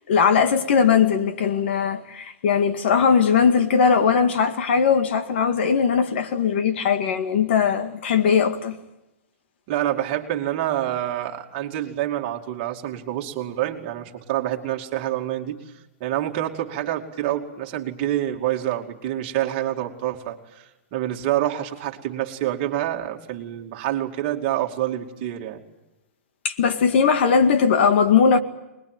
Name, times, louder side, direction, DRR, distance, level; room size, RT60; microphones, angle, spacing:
voice 1, 0.1-8.8 26.4-28.4, left 6 dB, 45° left, 2.1 m, -19 dB
voice 2, 9.7-15.6 16.0-25.6, right 13 dB, 30° right, 2.5 m, -27 dB
25.0 x 21.5 x 9.2 m
hypercardioid pair, 180°, 8 cm